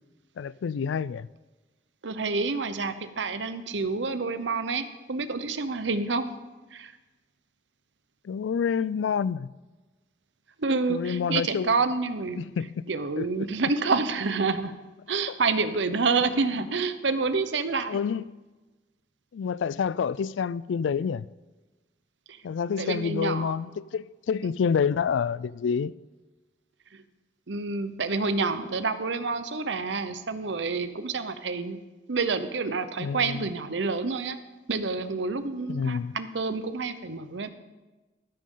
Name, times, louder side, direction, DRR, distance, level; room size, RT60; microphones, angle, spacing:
voice 1, 0.4-1.3 8.2-9.5 10.9-11.7 12.4-12.9 13.2-13.5 17.9-18.4 19.3-21.2 22.4-25.9 33.0-33.5 35.7-36.2, left 6 dB, 85° left, 0.3 m, -28 dB
voice 2, 2.0-6.3 6.7-6.9 10.6-12.5 12.9-14.7 15.1-18.0 22.3-22.4 22.8-23.6 24.4-24.5 26.9-27.0 27.5-31.8 32.1-34.4 34.7-37.5, right 4 dB, 80° right, 0.8 m, -28 dB
13.5 x 12.5 x 3.8 m
head